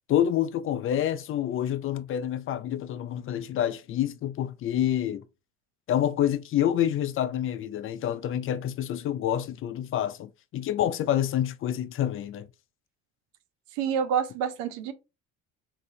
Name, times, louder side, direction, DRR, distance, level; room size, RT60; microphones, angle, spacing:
voice 1, 0.1-5.2 5.9-12.5, left 11 dB, 40° left, 0.4 m, -27 dB
voice 2, 13.7-14.9, right 7 dB, 85° right, 0.6 m, -27 dB
3.2 x 2.5 x 2.6 m
supercardioid pair, 80°, 32 cm